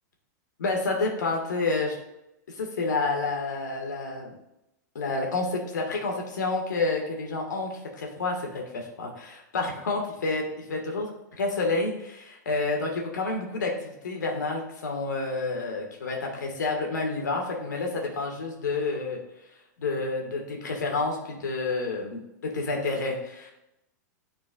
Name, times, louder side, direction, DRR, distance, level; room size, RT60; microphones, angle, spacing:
voice 1, 0.6-1.9 2.6-4.3 4.9-10.4 10.7-11.1 11.4-19.2 19.8-23.5, left 3 dB, 80° left, 0 dB, 1.6 m, -29 dB
9.6 x 4.4 x 2.3 m, 0.88 s
hypercardioid pair, 110°, 10 cm